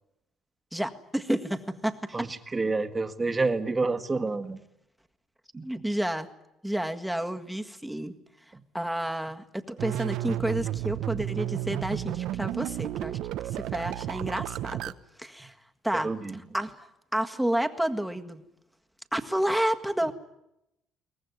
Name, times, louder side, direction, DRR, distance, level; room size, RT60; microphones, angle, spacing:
voice 1, 0.7-2.3 5.6-6.3 6.6-8.1 8.7-13.2 13.5-14.9 15.2-15.5 15.8-16.1 16.5-16.8 17.1-18.4 19.1-20.1, right 1 dB, ahead, 6 dB, 1.7 m, -30 dB
voice 2, 2.1-4.6 5.5-5.7 8.5-8.6 16.0-16.4, right 3 dB, 20° right, 6 dB, 1.6 m, -29 dB
sound 1, 9.8-14.9, right 13 dB, 75° right, 0.9 m, -32 dB
23.0 x 19.0 x 9.6 m, 0.84 s
cardioid pair, 100°, 0 cm